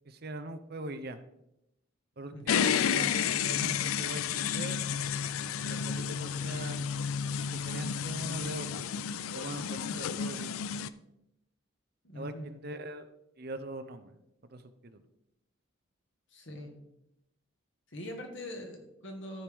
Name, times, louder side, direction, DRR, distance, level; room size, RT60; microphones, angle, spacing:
voice 1, 0.1-1.2 2.2-4.8 5.6-7.0 7.5-9.0 9.3-10.5 12.1-13.1 13.4-14.2 14.5-15.0, right 1 dB, 45° right, 10 dB, 0.7 m, -42 dB
voice 2, 2.3-3.1 12.0-12.5 16.3-16.8 17.9-19.4, equal, 55° left, 2 dB, 1.5 m, -43 dB
sound 1, 2.5-10.9, left 7 dB, 85° left, 0.4 m, -31 dB
14.0 x 5.0 x 3.5 m, 0.85 s
head